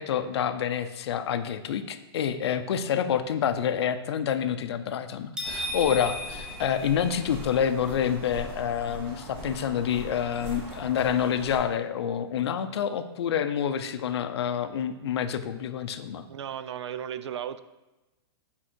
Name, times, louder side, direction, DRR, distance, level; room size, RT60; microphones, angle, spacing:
voice 1, 0.0-16.3, left 8 dB, 70° left, 10 dB, 0.5 m, -28 dB
sound 1, 5.4-7.5, left 1 dB, 5° right, 0.6 m, -35 dB
sound 2, 5.4-11.6, equal, 20° right, 1.9 m, -41 dB
voice 2, 16.3-17.6, right 9 dB, 90° right, 13 dB, 0.4 m, -35 dB
6.4 x 3.6 x 4.5 m, 1.1 s
hypercardioid pair, 160°, 14 cm